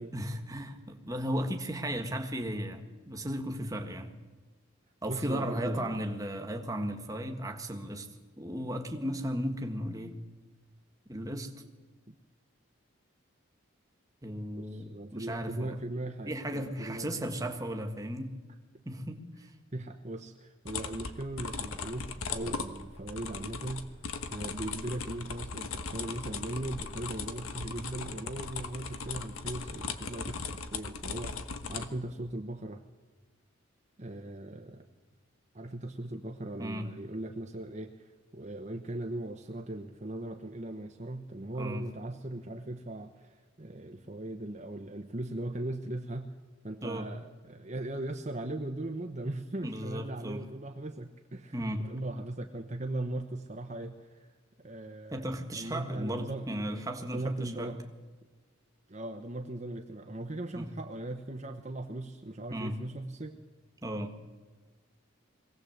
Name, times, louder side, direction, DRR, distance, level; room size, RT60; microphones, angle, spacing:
voice 1, 0.0-4.1 5.0-8.1 8.4-10.2 11.1-11.5 14.2-15.8 16.2-18.3 18.8-19.5 36.6-36.9 41.6-41.9 46.8-47.1 49.6-50.5 51.5-51.9 55.1-57.7 60.6-60.7 62.5-62.8 63.8-64.2, equal, 15° right, 5 dB, 1.6 m, -35 dB
voice 2, 5.1-6.0 12.1-12.2 14.6-17.3 19.7-24.0 24.3-32.8 34.0-34.8 35.5-46.3 46.6-57.8 58.9-63.4, right 1 dB, 35° right, 4 dB, 0.9 m, -39 dB
sound 1, 20.7-31.9, left 4 dB, 80° left, 1.4 m, -38 dB
22.5 x 17.5 x 7.9 m, 1.4 s
head